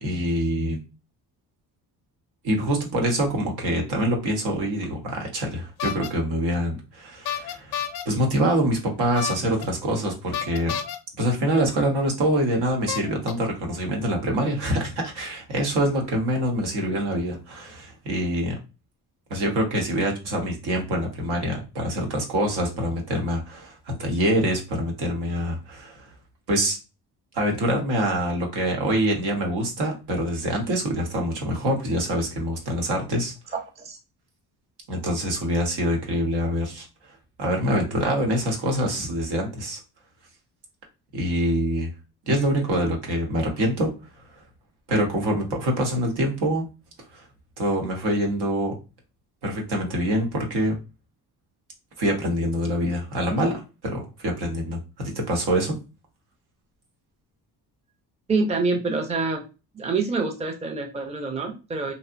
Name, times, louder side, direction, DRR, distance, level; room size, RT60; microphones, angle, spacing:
voice 1, 0.0-0.8 2.4-7.8 8.0-10.8 11.2-18.6 19.3-26.1 26.5-26.8 27.3-33.3 34.9-36.9 37.4-39.8 41.1-41.9 42.3-43.9 44.9-46.7 47.1-47.2 47.6-48.8 49.4-50.7 52.0-55.7, right 1 dB, 85° right, 1 dB, 1.0 m, -25 dB
sound 1, 5.8-6.1 7.3-8.0 9.1-9.6 10.3-11.0 12.0-12.1 12.9-13.3, left 9 dB, 75° left, 0.5 m, -29 dB
voice 2, 33.5-34.0 58.3-59.4 59.7-61.9, right 3 dB, 15° right, 3 dB, 0.4 m, -26 dB
2.7 x 2.0 x 2.5 m, 0.30 s
cardioid pair, 105°, 39 cm